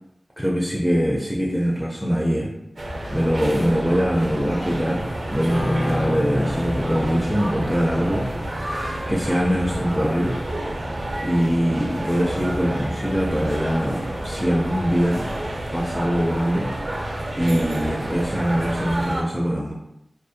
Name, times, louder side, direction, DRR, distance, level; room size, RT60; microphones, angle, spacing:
voice 1, 0.4-2.5 3.1-10.4 11.2-15.3 15.7-16.7 17.4-19.7, equal, 5° left, -4 dB, 0.4 m, -23 dB
sound 1, 2.8-19.2, right 1 dB, 55° right, 0.5 m, -29 dB
Piano, 5.5-14.9 15.1-15.4, left 1 dB, 80° left, 1.1 m, -32 dB
2.4 x 2.2 x 2.6 m, 0.84 s
wide cardioid pair, 80°, 0 cm